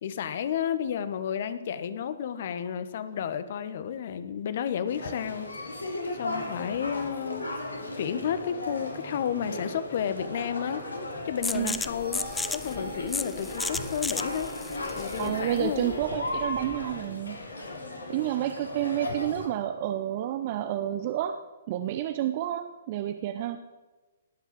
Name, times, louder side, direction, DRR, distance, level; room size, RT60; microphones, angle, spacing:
voice 1, 0.0-5.5 6.2-7.5 8.0-10.8 11.2-15.9, left 8 dB, 50° left, 12 dB, 1.4 m, -32 dB
sound 1, 4.9-19.5, left 2 dB, 80° left, 3.5 m, -36 dB
sound 2, 11.4-16.9, left 3 dB, 5° left, 0.7 m, -35 dB
voice 2, 15.2-17.4 18.1-21.4 21.7-23.6, right 12 dB, 40° right, 10 dB, 0.8 m, -30 dB
18.5 x 8.4 x 7.7 m, 1.2 s
figure-of-eight pair, 120°, 0 cm